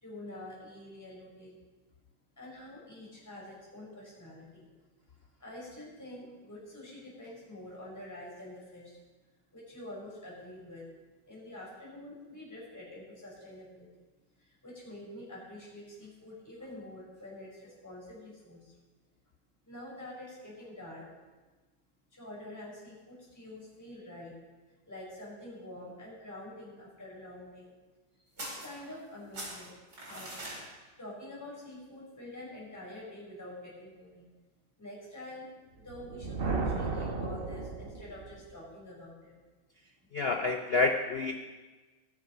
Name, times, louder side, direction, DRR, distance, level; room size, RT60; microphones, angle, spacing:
voice 1, 0.0-1.6 2.4-4.7 5.4-9.0 9.5-10.9 11.3-13.9 14.4-18.7 19.6-21.1 22.1-24.3 24.8-27.7 28.3-29.7 30.0-30.3 31.0-34.3 34.8-35.5 35.8-39.4, left 1 dB, 10° left, -6 dB, 4.7 m, -47 dB
sound 1, 28.4-29.1 29.3-30.6, right 1 dB, 80° right, 4.7 m, -42 dB
Thunder, 35.8-38.4, right 3 dB, 40° right, 1.1 m, -34 dB
voice 2, 40.1-41.4, left 3 dB, 75° left, 6 dB, 0.5 m, -28 dB
19.0 x 7.1 x 5.2 m, 1.3 s
omnidirectional pair, 1.9 m